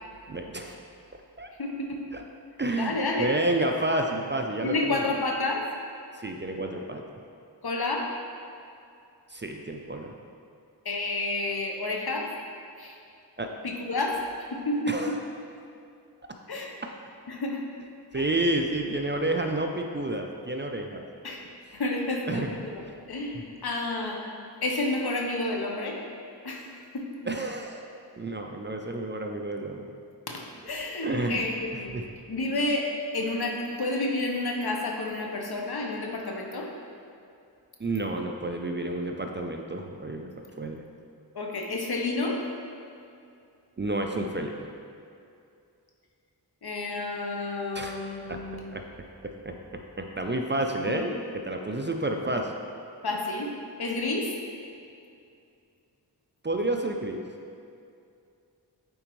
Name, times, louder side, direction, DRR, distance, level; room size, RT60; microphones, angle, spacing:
voice 1, 0.3-0.8 1.4-1.5 2.1-2.2 2.6-5.0 6.2-7.0 9.3-10.1 13.4-13.5 14.9-15.2 18.1-21.0 22.3-22.5 23.3-23.4 27.2-27.8 28.2-29.9 31.0-31.4 31.9-32.1 37.8-40.9 43.8-44.7 47.7-48.0 48.3-48.4 48.7-48.8 49.2-52.5 56.4-57.2, right 2 dB, 30° right, 3 dB, 0.4 m, -30 dB
voice 2, 1.6-2.1 2.7-3.3 4.6-5.6 7.6-8.1 10.8-12.3 12.8-13.0 13.6-14.2 14.5-15.2 16.5-16.8 17.3-17.6 18.1-18.3 21.2-21.4 21.7-22.8 23.1-24.2 24.6-26.0 26.4-26.7 26.9-27.2 30.3-30.4 30.7-32.0 32.3-32.9 33.1-36.7 41.3-42.4 46.6-48.7 50.8-51.0 53.0-53.5 53.8-54.3, left 2 dB, 65° left, 1 dB, 0.9 m, -30 dB
8.8 x 4.3 x 3.1 m, 2.5 s
wide cardioid pair, 55°, 42 cm